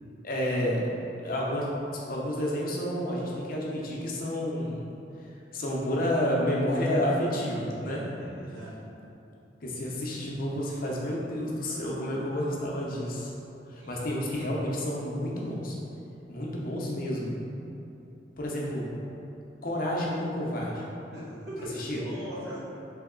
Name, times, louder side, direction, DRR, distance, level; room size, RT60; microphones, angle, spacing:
voice 1, 0.2-0.8 1.2-1.7 2.0-4.8 5.5-8.1 8.4-8.5 9.6-13.3 13.7-15.8 16.3-17.4 18.4-18.9 19.6-20.9 21.8-22.0, equal, 50° left, -4 dB, 0.6 m, -30 dB
voice 2, 8.2-8.9 13.8-14.1 21.1-22.6, equal, 65° right, -8 dB, 1.1 m, -40 dB
3.4 x 3.0 x 3.6 m, 2.8 s
head